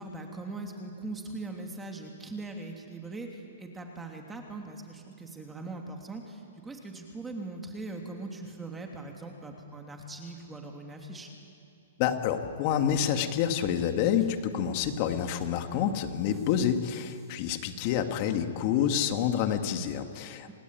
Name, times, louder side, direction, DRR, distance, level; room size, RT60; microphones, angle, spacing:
voice 1, 0.0-11.3 20.5-20.6, right 2 dB, 10° right, 2 dB, 3.0 m, -41 dB
voice 2, 12.0-20.5, left 9 dB, 45° left, 7 dB, 2.1 m, -28 dB
sound 1, 12.4-17.4, left 2 dB, 10° left, 7.6 m, -56 dB
27.5 x 18.5 x 9.3 m, 2.5 s
hypercardioid pair, 130°, 0 cm